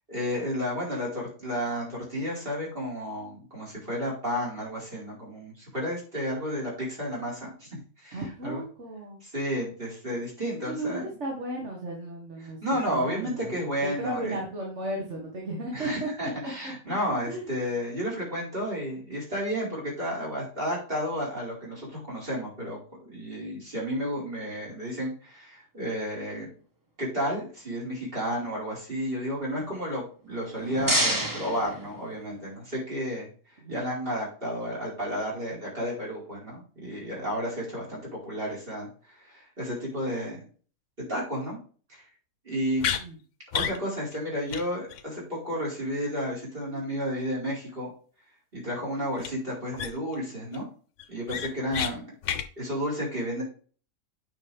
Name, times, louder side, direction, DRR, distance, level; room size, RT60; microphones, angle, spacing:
voice 1, 0.1-8.6 9.2-11.1 12.6-14.3 15.7-26.5 27.0-33.3 33.7-40.4 41.0-41.6 41.9-42.0 42.4-42.9 43.5-47.9 48.5-50.7 51.1-52.0 52.6-53.4, equal, 40° right, -3 dB, 4.9 m, -32 dB
voice 2, 8.1-9.2 10.7-12.6 12.9-13.6 14.0-16.1 16.6-17.0 17.3-17.6 33.6-33.9 42.9-43.2, right 2 dB, 55° right, -1 dB, 2.1 m, -35 dB
sound 1, 30.3-32.5, right 1 dB, 15° right, 1.1 m, -29 dB
sound 2, 42.8-43.0 43.5-43.8 44.1-44.2 44.5-44.6 44.9-45.0 49.2-49.3 49.8-50.1 50.5-50.6 51.0-51.9 52.2-52.5, left 8 dB, 65° left, 1.0 m, -30 dB
9.0 x 5.6 x 3.5 m, 0.40 s
omnidirectional pair, 1.5 m